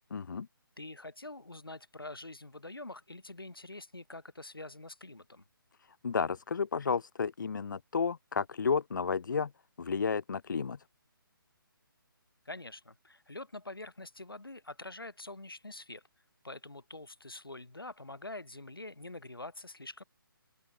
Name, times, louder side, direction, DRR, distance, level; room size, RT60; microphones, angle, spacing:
voice 1, 0.1-0.5 6.0-9.5 9.8-10.8, left 5 dB, 60° left, 0.5 m, -32 dB
voice 2, 0.8-5.4 12.4-16.0 16.4-20.0, left 2 dB, 85° left, 3.4 m, -45 dB
open air
figure-of-eight pair, 145°, 12 cm